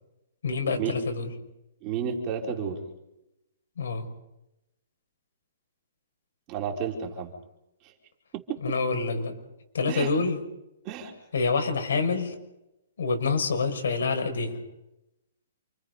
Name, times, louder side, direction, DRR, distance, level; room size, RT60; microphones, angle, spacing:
voice 1, 0.4-1.3 3.8-4.1 8.6-9.3 9.7-10.4 11.3-12.4 13.0-14.6, left 4 dB, 80° left, 5 dB, 5.8 m, -27 dB
voice 2, 1.8-2.8 6.5-7.3 7.8-7.9 8.3-8.4 9.9-10.1 10.8-11.1, right 7 dB, 20° right, 1 dB, 3.5 m, -31 dB
29.0 x 26.5 x 5.5 m, 0.90 s
hypercardioid pair, 175°, 0 cm